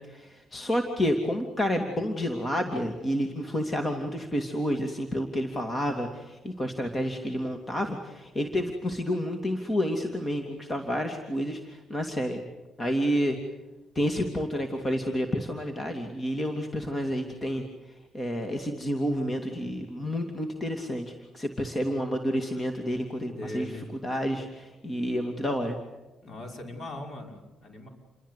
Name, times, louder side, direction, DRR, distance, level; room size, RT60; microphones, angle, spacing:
voice 1, 0.1-12.4 12.8-13.4 13.9-17.6 18.1-23.7 24.0-25.8, equal, 25° left, 4 dB, 2.8 m, -29 dB
voice 2, 23.3-23.9 26.2-27.9, left 1 dB, 50° left, 3 dB, 5.9 m, -39 dB
29.0 x 22.0 x 8.4 m, 1.1 s
cardioid pair, 90°, 0 cm